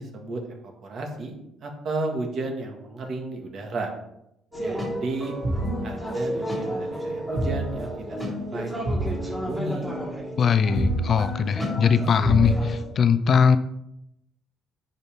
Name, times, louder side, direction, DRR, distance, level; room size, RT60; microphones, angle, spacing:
voice 1, 0.0-1.3 1.6-3.9 4.6-5.3 5.8-8.7 9.2-9.8, right 2 dB, 50° right, 3 dB, 1.7 m, -33 dB
sound 1, 4.5-12.8, right 1 dB, 10° right, 3.4 m, -29 dB
voice 2, 10.4-13.6, left 6 dB, 45° left, 12 dB, 0.5 m, -20 dB
9.8 x 5.6 x 3.5 m, 0.82 s
cardioid pair, 115°, 0 cm